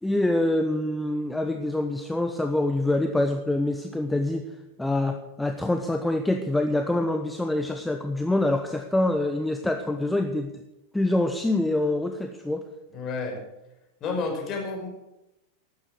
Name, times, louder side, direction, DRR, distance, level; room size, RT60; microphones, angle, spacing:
voice 1, 0.0-4.4 4.8-10.5 10.9-12.6, left 1 dB, 5° left, 6 dB, 1.1 m, -25 dB
voice 2, 12.9-13.4 14.0-14.9, left 4 dB, 30° left, 2 dB, 5.5 m, -30 dB
15.0 x 12.5 x 6.4 m, 0.95 s
figure-of-eight pair, 90°, 0 cm